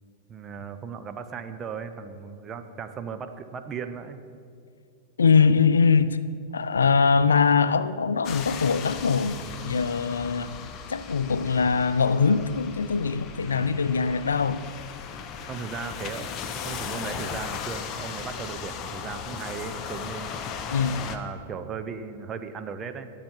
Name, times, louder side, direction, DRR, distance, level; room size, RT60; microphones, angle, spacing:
voice 1, 0.3-4.2 9.4-9.8 13.4-13.8 15.5-20.4 21.0-23.1, right 6 dB, 25° right, 0.9 m, -37 dB
voice 2, 5.2-6.2 6.5-9.4 9.6-10.5 10.9-14.6 20.7-21.1, left 5 dB, 85° left, 0.4 m, -22 dB
sound 1, 8.2-21.2, left 7 dB, 35° left, 0.9 m, -37 dB
19.0 x 7.5 x 4.7 m
hypercardioid pair, 100°, 0 cm